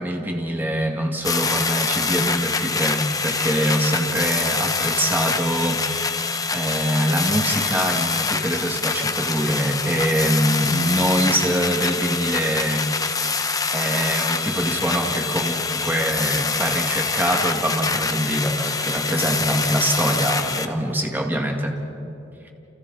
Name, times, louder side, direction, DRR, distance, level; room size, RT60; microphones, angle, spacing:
voice 1, 0.0-5.8 6.5-12.9 13.7-21.8, right 1 dB, 10° right, 1 dB, 2.1 m, -24 dB
sound 1, 1.2-20.7, left 4 dB, 20° left, 0.9 m, -25 dB
30.0 x 28.0 x 4.2 m, 2.9 s
head